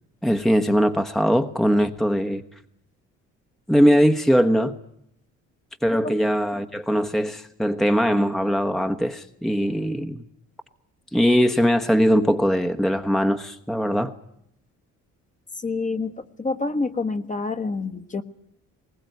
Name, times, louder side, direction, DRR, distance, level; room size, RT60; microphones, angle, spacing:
voice 1, 0.2-2.4 3.7-4.7 5.8-10.2 11.1-14.1, equal, ahead, 1.2 m, -21 dB
voice 2, 15.6-16.1 16.4-18.2, left 3 dB, 25° left, 1.5 m, -27 dB
21.0 x 19.0 x 9.3 m
cardioid pair, 90°, 30 cm